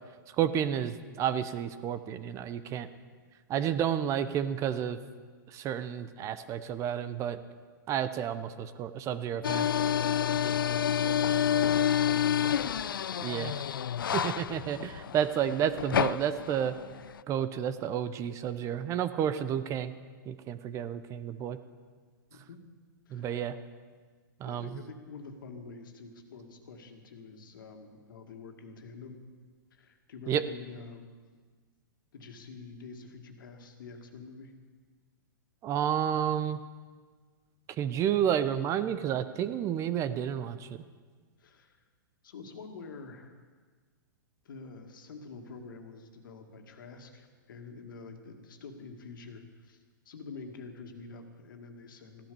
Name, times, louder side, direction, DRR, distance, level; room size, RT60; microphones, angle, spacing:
voice 1, 0.4-2.9 3.5-5.0 5.5-7.4 7.9-9.7 13.2-13.6 14.1-16.7 17.3-19.9 20.3-21.6 23.1-23.6 24.4-24.7 30.3-30.4 35.6-36.6 37.8-40.8, right 9 dB, 25° right, 13 dB, 0.7 m, -31 dB
sound 1, 9.4-17.2, left 9 dB, 90° left, 0.4 m, -29 dB
voice 2, 10.2-13.4 22.3-22.6 23.1-23.3 24.4-29.3 29.7-31.1 32.1-34.6 41.4-41.8 42.2-43.4 44.4-52.3, left 4 dB, 75° left, 5 dB, 2.1 m, -47 dB
15.0 x 11.5 x 7.0 m, 1.5 s
hypercardioid pair, 130°, 11 cm